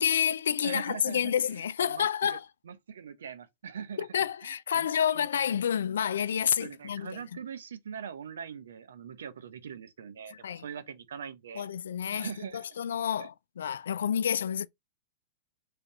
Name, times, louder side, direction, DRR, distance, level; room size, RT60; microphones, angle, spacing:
voice 1, 0.0-2.4 4.0-7.2 10.3-10.6 11.6-12.3 12.5-14.7, left 8 dB, 85° left, 0.3 m, -29 dB
voice 2, 0.6-2.4 2.6-4.1 4.7-5.5 6.6-11.7 12.1-12.7 13.2-13.3, right 7 dB, 85° right, 0.7 m, -42 dB
3.4 x 2.8 x 3.9 m
hypercardioid pair, 125°, 0 cm